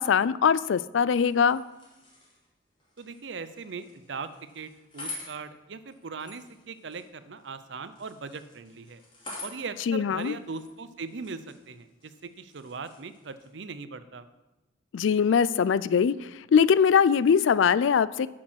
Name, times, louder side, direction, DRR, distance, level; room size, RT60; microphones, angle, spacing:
voice 1, 0.0-1.6 9.9-10.4 14.9-16.2 16.5-18.3, left 7 dB, 75° left, 18 dB, 0.4 m, -22 dB
sound 1, 1.1-13.5, left 2 dB, 25° left, 2.9 m, -48 dB
voice 2, 3.0-4.3 4.5-9.0 9.4-14.2, right 4 dB, 65° right, 12 dB, 0.6 m, -39 dB
10.5 x 6.0 x 6.3 m, 1.1 s
head